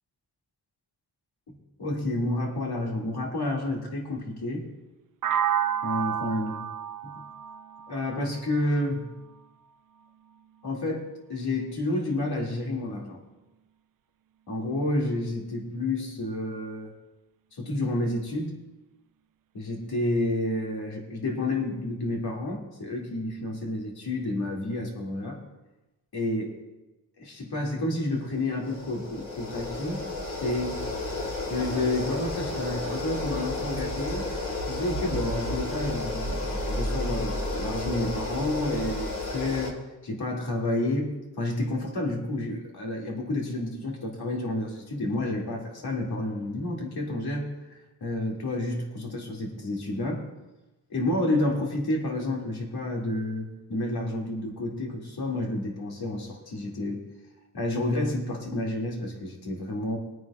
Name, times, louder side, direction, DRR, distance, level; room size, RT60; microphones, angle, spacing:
voice 1, 1.8-4.7 5.8-6.7 7.0-7.1 7.9-9.1 10.6-13.2 14.5-16.9 17.5-18.6 19.5-25.4 26.1-26.5 27.2-30.9 31.5-34.3 34.7-47.5 48.0-50.2 50.9-57.0 57.5-60.0, left 1 dB, 70° left, -1 dB, 2.5 m, -30 dB
sound 1, 5.2-9.1, right 9 dB, 55° right, 0.5 m, -30 dB
sound 2, 28.1-39.7, left 1 dB, 55° left, 2.4 m, -32 dB
22.0 x 9.3 x 2.5 m, 1.0 s
wide cardioid pair, 120°, 40 cm